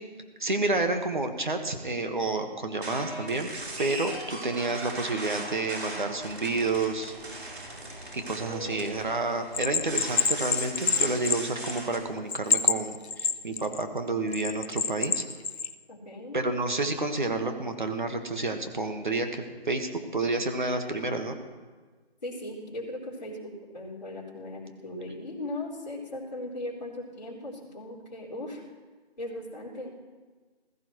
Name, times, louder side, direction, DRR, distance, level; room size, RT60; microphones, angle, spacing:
voice 1, 0.4-3.5 3.8-7.1 8.1-15.2 16.3-21.4, right 2 dB, 50° right, 5 dB, 1.6 m, -30 dB
sound 1, 2.7-12.0, right 2 dB, 90° right, 4.4 m, -39 dB
voice 2, 8.5-9.0 15.9-16.4 22.2-28.6 29.2-29.9, left 1 dB, 40° left, -5 dB, 4.0 m, -38 dB
Bell, 9.5-12.0 12.3-13.8 14.3-15.7, left 5 dB, 85° left, 1.0 m, -27 dB
20.5 x 14.5 x 3.2 m, 1.4 s
figure-of-eight pair, 180°, 31 cm